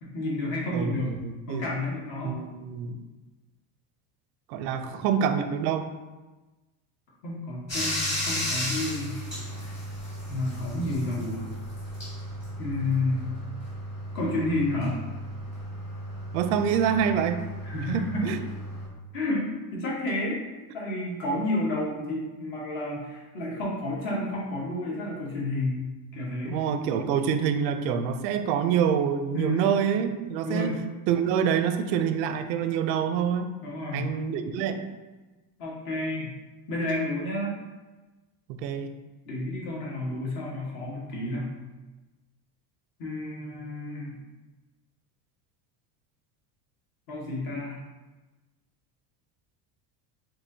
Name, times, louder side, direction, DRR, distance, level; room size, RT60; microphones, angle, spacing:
voice 1, 0.0-1.2 1.5-2.4 7.2-9.2 10.3-11.5 12.6-13.3 14.1-15.0 17.6-18.3 19.1-20.4 20.7-26.6 29.3-29.7 30.4-30.7 33.6-34.1 35.6-36.3 36.7-37.5 39.2-41.6 43.0-44.2 47.1-47.8, left 1 dB, 50° left, -4 dB, 1.4 m, -30 dB
voice 2, 0.7-1.6 2.2-3.0 4.5-5.9 9.3-9.4 16.3-17.5 17.9-18.4 26.4-30.7 31.1-33.5 33.9-34.8 38.5-38.9, right 8 dB, 90° right, 9 dB, 0.6 m, -26 dB
Bathtub (filling or washing), 7.7-18.9, equal, 20° left, 1.4 m, -35 dB
4.6 x 3.8 x 2.7 m, 1.2 s
cardioid pair, 175°, 49 cm